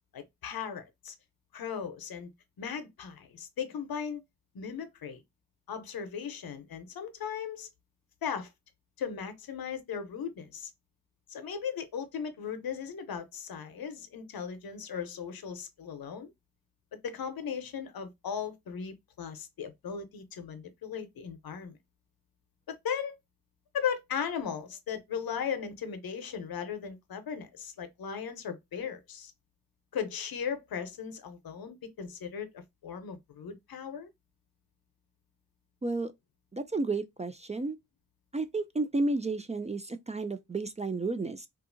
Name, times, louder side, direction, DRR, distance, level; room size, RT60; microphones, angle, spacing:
voice 1, 0.1-1.2 1.5-2.3 2.6-4.2 4.5-5.2 5.7-7.7 8.2-8.5 9.0-10.7 11.3-16.3 17.0-21.8 22.7-23.2 23.7-29.3 29.9-34.1, left 7 dB, 75° left, 0.7 m, -37 dB
voice 2, 36.5-37.8 38.3-41.5, right 3 dB, 20° right, 0.3 m, -32 dB
2.7 x 2.4 x 2.5 m
cardioid pair, 45°, 36 cm